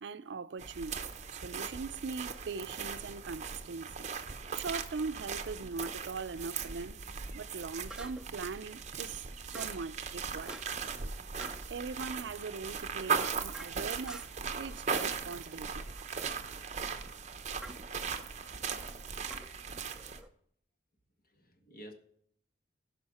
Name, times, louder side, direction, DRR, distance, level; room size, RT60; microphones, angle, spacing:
voice 1, 0.0-1.0 1.3-4.1 4.5-7.0 7.3-10.6 11.7-14.3 14.5-15.8, right 4 dB, 75° right, 0.5 m, -41 dB
sound 1, 0.6-20.2, right 6 dB, 40° right, 0.8 m, -38 dB
sound 2, 7.9-8.4 9.5-9.9 10.5-10.9 11.4-11.7 12.9-14.5 16.0-16.3 17.6-17.9 19.3-20.3, right 1 dB, 5° right, 0.5 m, -50 dB
voice 2, 21.2-21.9, equal, 50° left, 1.7 m, -51 dB
16.5 x 5.6 x 4.2 m
head